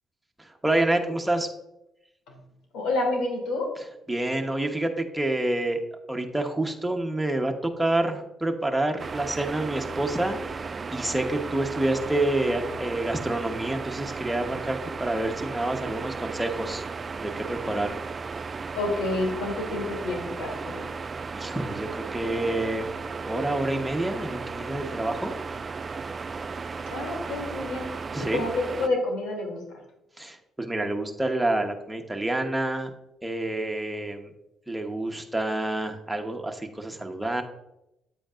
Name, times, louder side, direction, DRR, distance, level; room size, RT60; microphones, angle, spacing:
voice 1, 0.4-1.5 4.1-5.8 6.1-16.8 17.2-18.0 21.3-22.9 23.2-25.3 28.1-28.4 30.2-32.9 33.2-34.3 34.7-37.4, right 1 dB, 10° right, 3 dB, 1.1 m, -28 dB
voice 2, 2.7-3.7 18.7-20.9 26.9-27.9 28.2-29.8, left 2 dB, 85° left, 1 dB, 2.9 m, -29 dB
sound 1, 9.0-28.9, right 4 dB, 35° right, 0.3 m, -35 dB
9.2 x 8.4 x 2.5 m, 0.86 s
cardioid pair, 90°, 0 cm